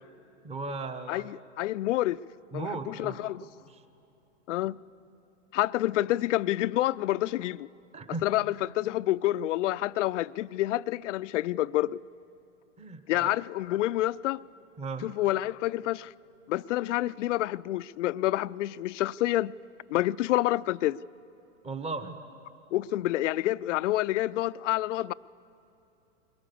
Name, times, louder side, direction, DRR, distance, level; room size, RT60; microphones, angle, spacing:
voice 1, 0.4-1.3 2.5-3.2 3.7-3.8 7.9-8.3 12.8-13.3 14.8-15.1 21.6-22.2, right 3 dB, 15° right, 1.1 m, -36 dB
voice 2, 1.1-2.2 2.5-3.5 4.5-4.8 5.5-7.7 8.2-12.0 13.1-14.4 15.0-16.1 16.5-19.5 19.9-21.0 22.7-25.1, left 15 dB, 70° left, 0.5 m, -28 dB
22.0 x 18.5 x 7.0 m
hypercardioid pair, 110°, 37 cm